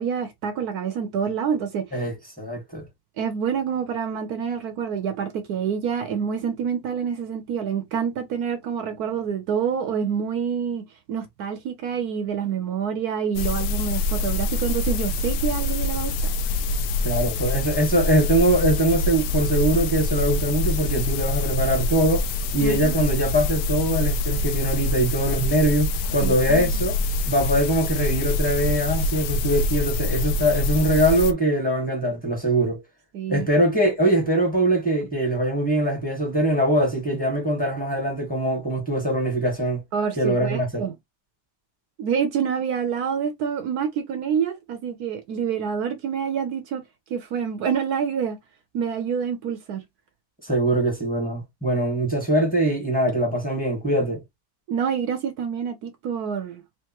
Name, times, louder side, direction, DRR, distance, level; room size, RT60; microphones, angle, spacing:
voice 1, 0.0-1.9 3.2-10.8 11.1-16.3 22.6-23.0 26.2-26.7 33.1-33.5 39.9-40.9 42.0-46.8 47.1-48.4 48.7-49.8 54.7-56.6, right 7 dB, 70° right, 1.2 m, -27 dB
voice 2, 1.9-2.9 17.0-22.3 22.5-27.0 27.3-32.8 33.3-39.8 40.2-40.8 50.4-54.2, right 1 dB, 5° left, 1.6 m, -22 dB
sound 1, 13.4-31.3, left 2 dB, 85° left, 1.1 m, -25 dB
3.4 x 3.3 x 2.9 m
omnidirectional pair, 1.7 m